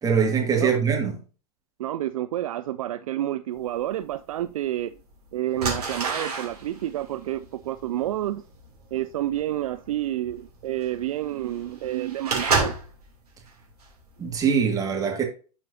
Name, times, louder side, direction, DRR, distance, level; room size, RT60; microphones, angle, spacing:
voice 1, 0.0-1.2 14.2-15.2, right 6 dB, 15° right, 1.9 m, -23 dB
voice 2, 1.8-4.9 5.3-8.4 8.9-12.7, right 13 dB, 60° right, 0.4 m, -29 dB
sound 1, 4.1-4.2 4.9-5.1 5.5-13.0 13.5-13.9 14.3-14.5, right 4 dB, 80° right, 2.7 m, -29 dB
11.0 x 4.6 x 2.7 m
figure-of-eight pair, 95°, 20 cm